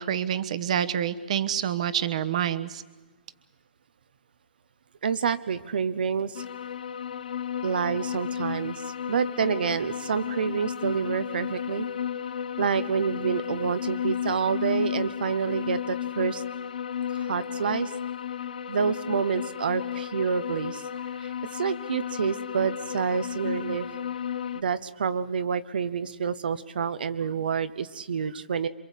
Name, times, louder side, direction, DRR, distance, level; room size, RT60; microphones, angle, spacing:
voice 1, 0.0-2.8, right 9 dB, 40° right, 13 dB, 1.2 m, -27 dB
voice 2, 5.0-6.4 7.6-11.9 12.6-16.4 17.1-17.9 18.7-20.8 21.2-23.9 24.5-28.7, right 6 dB, 65° right, 12 dB, 1.0 m, -28 dB
sound 1, 6.3-24.6, left 8 dB, 55° left, 1.1 m, -33 dB
27.5 x 24.5 x 8.4 m, 1.2 s
hypercardioid pair, 175°, 5 cm